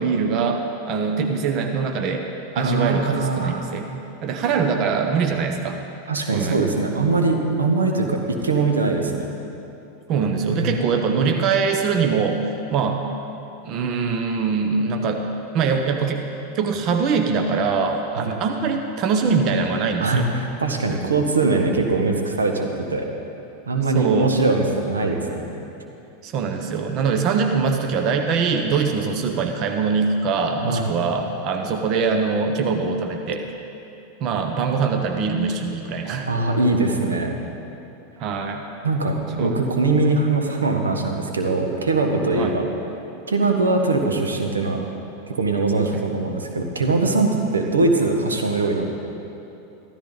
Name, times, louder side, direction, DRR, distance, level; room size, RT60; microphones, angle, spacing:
voice 1, 0.0-2.3 2.5-3.9 4.2-5.8 6.3-6.6 10.1-13.1 13.6-15.3 15.5-16.2 16.5-20.2 23.9-24.4 26.2-33.4 34.2-36.3 38.2-38.6 39.4-39.6 42.3-42.6 45.9-46.0, right 5 dB, 45° right, 4 dB, 1.0 m, -23 dB
voice 2, 2.6-3.6 6.1-8.2 8.4-9.2 10.5-11.0 18.2-18.3 20.0-23.0 23.7-25.5 30.6-30.9 36.3-37.4 38.8-39.1 39.4-42.7 43.3-44.8 45.3-48.9, right 3 dB, 85° right, 3 dB, 1.2 m, -21 dB
14.5 x 13.0 x 4.0 m, 2.8 s
hypercardioid pair, 90°, 0 cm